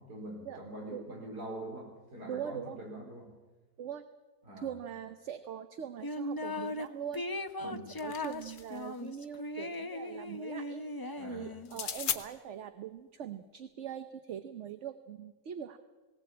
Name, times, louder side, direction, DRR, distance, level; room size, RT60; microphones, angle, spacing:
voice 1, 0.0-3.3 4.4-4.7 7.6-7.9 11.2-11.5, right 1 dB, 75° right, 1 dB, 5.2 m, -44 dB
voice 2, 2.3-2.8 3.8-4.0 4.6-15.8, right 9 dB, 55° right, 10 dB, 1.0 m, -42 dB
sound 1, 6.0-6.9 7.1-11.8, left 1 dB, 30° left, 0.4 m, -38 dB
sound 2, 7.6-8.9 11.6-12.2, left 8 dB, 70° left, 1.6 m, -37 dB
18.5 x 18.5 x 8.6 m, 1.3 s
omnidirectional pair, 1.7 m